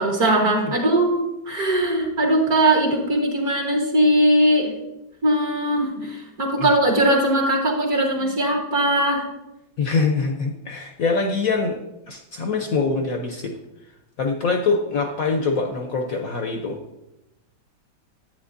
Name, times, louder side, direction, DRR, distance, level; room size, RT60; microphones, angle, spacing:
voice 1, 0.0-4.7 5.2-9.2, right 1 dB, 50° right, -2 dB, 1.7 m, -20 dB
voice 2, 9.8-11.8 12.1-13.5 14.2-16.8, left 4 dB, 65° left, 4 dB, 0.9 m, -24 dB
11.0 x 8.7 x 2.6 m, 0.91 s
omnidirectional pair, 2.2 m